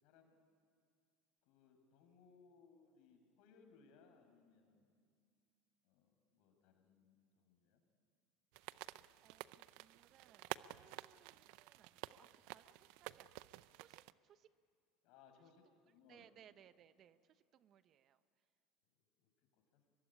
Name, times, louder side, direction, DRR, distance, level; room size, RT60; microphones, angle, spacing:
voice 1, 0.0-0.4 1.4-4.9 5.8-7.8 15.0-16.3 19.2-19.8, left 5 dB, 65° left, 5 dB, 5.8 m, -68 dB
sound 1, 8.5-14.1, right 18 dB, 70° right, 0.6 m, -51 dB
voice 2, 8.7-14.5 16.0-18.5, right 10 dB, 45° right, 13 dB, 1.0 m, -67 dB
23.5 x 23.0 x 9.9 m, 2.2 s
hypercardioid pair, 95°, 0 cm